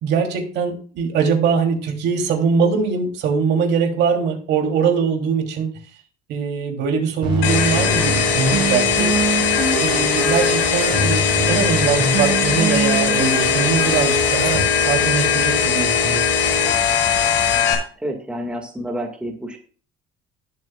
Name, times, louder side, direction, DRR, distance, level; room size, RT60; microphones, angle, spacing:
voice 1, 0.0-5.7 6.3-9.1 9.8-16.2, right 6 dB, 65° right, 3 dB, 2.9 m, -22 dB
sound 1, 7.2-14.6, right 2 dB, 25° right, 5.0 m, -24 dB
sound 2, 7.4-17.7, left 6 dB, 85° left, 6.4 m, -19 dB
voice 2, 18.0-19.6, equal, 5° right, 2 dB, 1.8 m, -29 dB
19.5 x 7.7 x 2.3 m, 0.40 s
cardioid pair, 175°, 19 cm